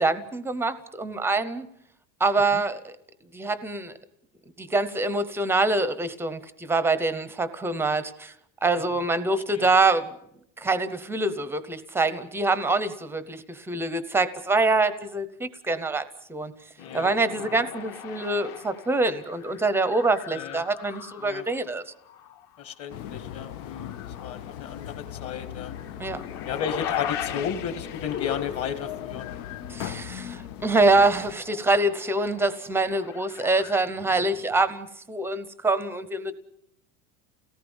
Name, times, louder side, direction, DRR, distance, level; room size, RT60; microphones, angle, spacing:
voice 1, 0.0-1.7 2.2-2.9 3.3-3.9 4.6-8.3 8.6-10.2 10.6-16.0 16.3-16.5 16.9-21.8 26.0-26.2 29.7-36.3, right 3 dB, 5° right, 13 dB, 0.7 m, -25 dB
sound 1, 16.8-21.6 22.0-22.7 23.2-29.9 30.2-30.3 30.5-34.7, left 9 dB, 50° left, 1.9 m, -39 dB
voice 2, 16.8-17.5 20.3-20.6 21.2-21.5 22.6-23.9 24.2-25.7 26.5-29.3, left 8 dB, 35° left, 8 dB, 1.8 m, -34 dB
sound 2, 22.9-31.3, left 10 dB, 80° left, 1.4 m, -39 dB
29.5 x 18.0 x 5.4 m, 0.76 s
cardioid pair, 170°, 41 cm